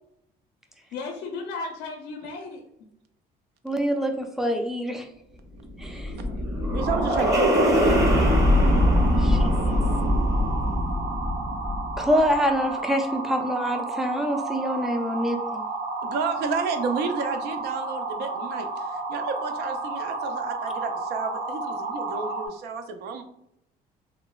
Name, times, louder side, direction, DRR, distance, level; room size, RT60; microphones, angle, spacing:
voice 1, 0.9-2.6 6.2-7.1 10.4-10.8, left 3 dB, 85° left, 2 dB, 0.4 m, -37 dB
voice 2, 3.6-5.1 5.8-6.1 9.2-9.9 12.0-15.6, equal, ahead, 4 dB, 0.4 m, -26 dB
sound 1, 5.6-12.1, equal, 20° right, 0.7 m, -22 dB
voice 3, 6.6-8.1 16.0-23.2, right 4 dB, 75° right, 7 dB, 0.4 m, -31 dB
sound 2, 6.8-22.5, right 3 dB, 55° right, 0.9 m, -32 dB
3.1 x 2.0 x 2.2 m, 0.76 s
cardioid pair, 110°, 17 cm